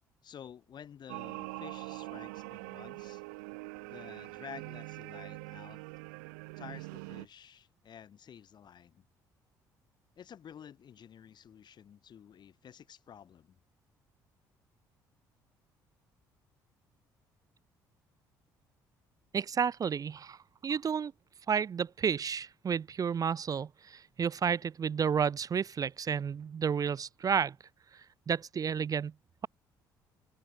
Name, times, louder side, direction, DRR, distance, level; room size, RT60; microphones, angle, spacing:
voice 1, 0.2-3.2 3.8-5.8 6.6-9.1 10.2-13.6, left 8 dB, 50° left, 1.0 m, -51 dB
sound 1, 1.1-7.3, right 28 dB, 85° right, 0.5 m, -43 dB
voice 2, 19.3-20.4 20.6-21.1 21.5-27.6 28.3-29.1, right 7 dB, 40° right, 0.5 m, -31 dB
hypercardioid pair, 60°, 9 cm